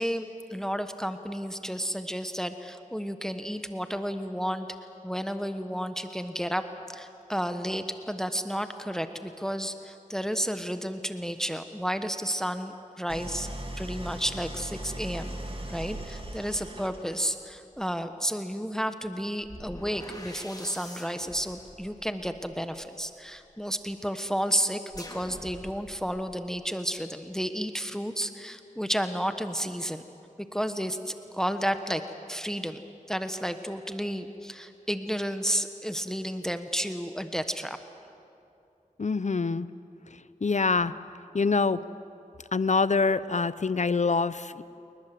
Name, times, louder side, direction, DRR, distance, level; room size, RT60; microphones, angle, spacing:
voice 1, 0.0-4.7 5.0-6.6 6.9-13.5 13.8-15.4 15.7-30.0 30.5-32.0 32.3-32.8 33.1-37.8, equal, 5° left, 8 dB, 1.2 m, -32 dB
Idling, 13.1-17.3, right 1 dB, 40° right, 2.9 m, -38 dB
sound 1, 17.7-17.9 19.4-23.5 24.9-26.3, left 1 dB, 25° left, 3.4 m, -46 dB
voice 2, 39.0-39.7 40.4-40.9 41.3-41.8 42.5-44.6, left 4 dB, 55° left, 16 dB, 0.7 m, -25 dB
29.5 x 20.0 x 7.7 m, 2.7 s
wide cardioid pair, 50°, 14 cm